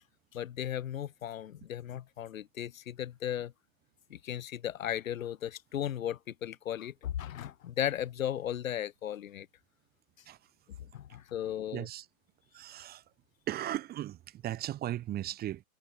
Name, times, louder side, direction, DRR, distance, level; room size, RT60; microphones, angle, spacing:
voice 1, 0.3-3.5 4.1-9.5 10.9-11.9, left 10 dB, 70° left, 3.2 m, -36 dB
voice 2, 11.7-12.1 12.5-13.0 13.5-15.6, right 13 dB, 20° right, 7.6 m, -37 dB
hypercardioid pair, 150°, 42 cm